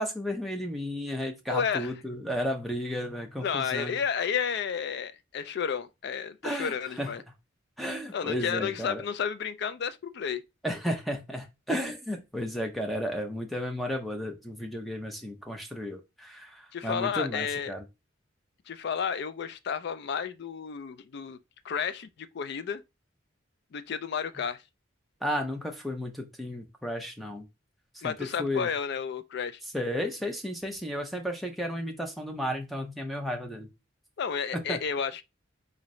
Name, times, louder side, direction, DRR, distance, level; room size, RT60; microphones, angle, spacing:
voice 1, 0.0-4.0 6.4-7.1 7.8-9.0 10.6-17.8 25.2-27.4 28.0-28.1 28.4-28.7 29.7-33.7 34.5-34.8, equal, ahead, 0.6 m, -33 dB
voice 2, 1.5-1.9 3.4-7.2 8.1-10.4 16.7-17.8 18.7-21.4 21.6-22.8 23.7-24.6 28.0-29.6 34.2-35.2, left 7 dB, 55° left, 0.3 m, -32 dB
3.8 x 2.6 x 3.1 m
head